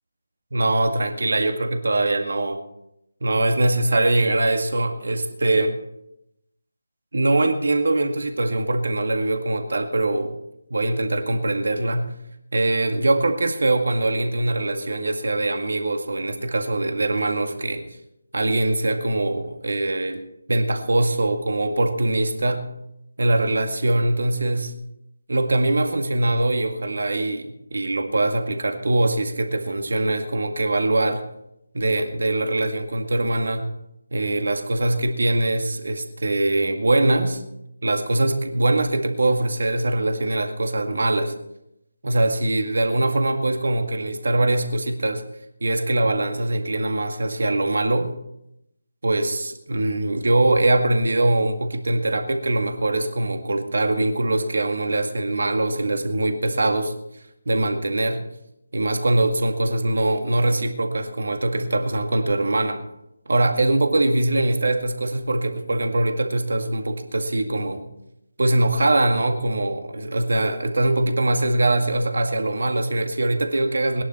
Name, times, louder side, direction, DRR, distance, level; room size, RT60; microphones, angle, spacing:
voice 1, 0.5-2.6 3.2-5.8 7.1-10.4 10.7-12.1 12.5-17.8 18.3-20.2 20.5-22.7 23.2-24.7 25.3-31.2 31.7-33.7 34.1-37.4 37.8-41.3 42.0-45.2 45.6-48.1 49.0-56.9 57.5-58.2 58.7-62.8 63.3-67.9 68.4-74.0, right 2 dB, 65° right, 5 dB, 2.0 m, -22 dB
20.5 x 11.5 x 4.4 m, 0.82 s
figure-of-eight pair, 155°, 0 cm